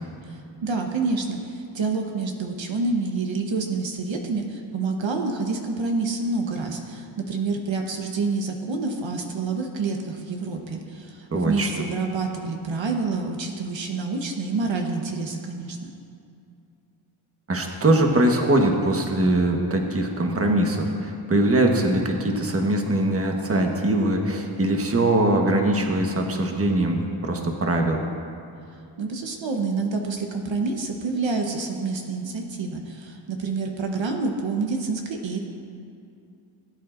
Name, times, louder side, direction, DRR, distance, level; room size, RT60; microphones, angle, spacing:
voice 1, 0.2-15.9 29.0-35.4, right 3 dB, 65° right, 3 dB, 1.1 m, -28 dB
voice 2, 11.3-11.7 17.5-28.0, right 1 dB, 30° right, 2 dB, 1.3 m, -22 dB
18.0 x 8.6 x 2.6 m, 2.5 s
cardioid pair, 70°, 49 cm